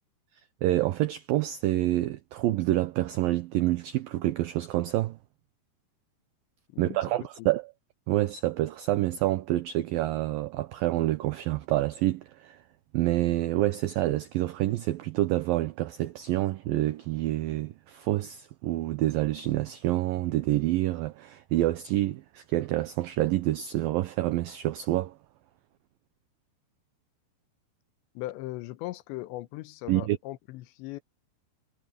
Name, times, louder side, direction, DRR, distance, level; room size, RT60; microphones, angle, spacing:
voice 1, 0.6-5.2 6.8-7.7 8.1-12.6 12.9-25.2 29.9-30.2, right 15 dB, 85° right, 2.0 m, -27 dB
voice 2, 6.7-7.0 7.4-7.5 28.1-31.0, left 17 dB, 90° left, 3.1 m, -38 dB
omnidirectional pair, 5.2 m